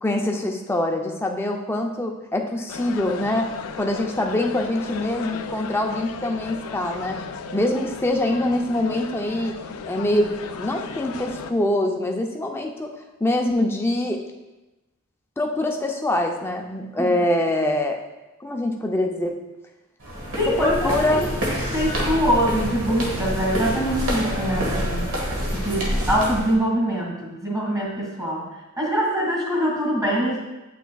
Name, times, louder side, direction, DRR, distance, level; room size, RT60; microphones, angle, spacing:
voice 1, 0.0-7.2 7.5-9.5 9.9-12.9 13.2-14.2 15.4-18.0 18.4-19.4 20.5-21.3, left 1 dB, 10° left, 2 dB, 0.5 m, -24 dB
sound 1, 2.7-11.5, left 5 dB, 75° left, 0.4 m, -35 dB
sound 2, 20.0-26.5, equal, 65° right, 1.5 m, -27 dB
voice 2, 20.4-21.2 21.7-25.1 25.5-28.5 28.8-30.4, equal, 15° right, -4 dB, 1.8 m, -24 dB
8.2 x 5.8 x 2.3 m, 1.1 s
head